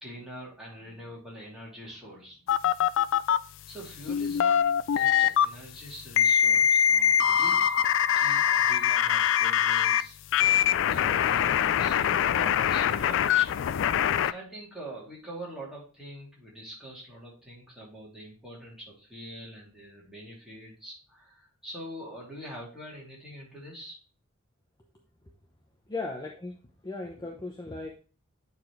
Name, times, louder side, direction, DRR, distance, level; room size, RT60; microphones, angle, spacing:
voice 1, 0.0-2.4 2.7-2.8 3.1-3.2 3.7-7.8 8.1-10.1 10.9-13.6 14.2-23.9, equal, ahead, -5 dB, 3.0 m, -44 dB
sound 1, 2.5-3.4 4.1-5.5 6.2-10.0 10.3-14.3, left 9 dB, 65° left, 0.3 m, -23 dB
voice 2, 25.9-26.6 26.8-27.9, left 3 dB, 20° left, 0 dB, 0.8 m, -36 dB
9.4 x 4.1 x 3.2 m, 0.36 s
head